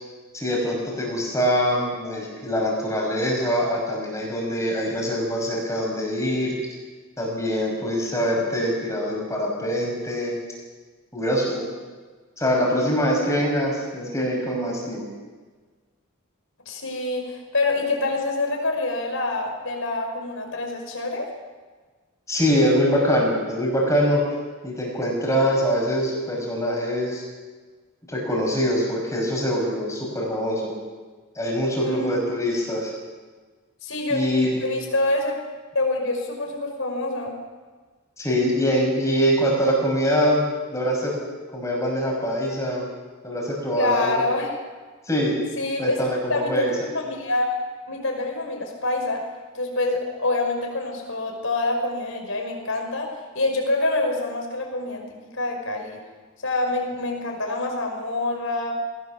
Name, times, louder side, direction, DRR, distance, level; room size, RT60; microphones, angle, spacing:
voice 1, 0.3-6.6 7.2-10.4 11.1-11.7 12.4-15.1 22.3-24.2 24.6-27.2 28.1-30.7 31.4-32.9 34.1-34.6 38.2-40.4 40.7-41.1 41.5-42.9 43.2-44.1 45.1-45.4 45.8-46.7, equal, 15° left, -2 dB, 5.6 m, -23 dB
voice 2, 16.6-21.3 31.8-32.3 33.8-34.2 34.6-35.4 35.7-37.3 43.8-44.6 45.6-46.0 46.3-47.5 47.9-49.3 49.5-56.0 56.4-58.7, left 2 dB, 65° left, 2 dB, 5.1 m, -26 dB
21.0 x 17.5 x 7.2 m, 1.4 s
head